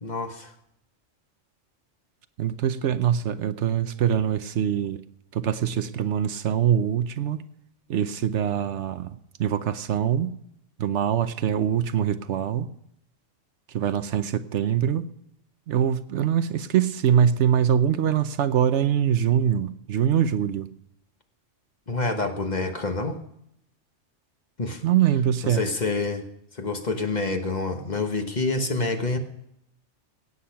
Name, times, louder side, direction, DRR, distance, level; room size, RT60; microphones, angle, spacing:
voice 1, 0.0-0.5 21.9-23.2 24.6-24.8 25.4-26.2 26.5-29.2, left 3 dB, 35° left, 6 dB, 1.3 m, -27 dB
voice 2, 2.4-5.0 5.3-7.4 7.9-10.3 10.8-12.7 13.7-15.1 15.7-20.7 24.8-25.6, right 9 dB, 75° right, 12 dB, 1.0 m, -23 dB
17.0 x 8.3 x 5.8 m, 0.76 s
omnidirectional pair, 1.3 m